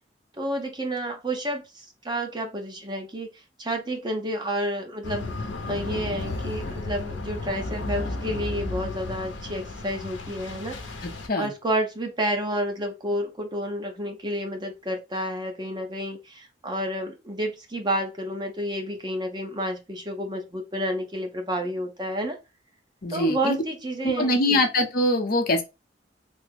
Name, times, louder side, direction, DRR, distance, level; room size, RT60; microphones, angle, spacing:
voice 1, 0.4-3.3 3.6-11.0 11.4-22.4 23.1-24.6, right 1 dB, 25° right, 0.7 m, -30 dB
sound 1, 5.0-11.3, left 2 dB, 90° left, 0.7 m, -33 dB
voice 2, 11.0-11.5 23.0-23.6 24.0-25.6, left 1 dB, 55° left, 0.7 m, -23 dB
3.4 x 2.1 x 3.3 m
head